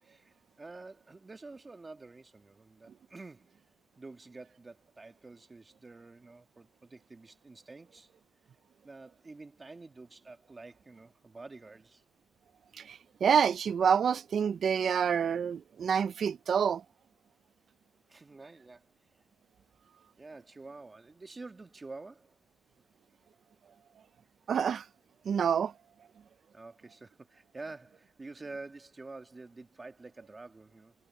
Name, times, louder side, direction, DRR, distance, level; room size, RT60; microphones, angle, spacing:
voice 1, 0.0-3.7 4.0-8.1 8.8-12.0 18.1-18.9 20.2-22.4 26.5-30.9, right 3 dB, 20° right, 1.8 m, -48 dB
voice 2, 12.8-16.8 24.5-24.9 25.3-25.7, right 7 dB, 55° right, 0.4 m, -27 dB
wide cardioid pair, 145°, 0 cm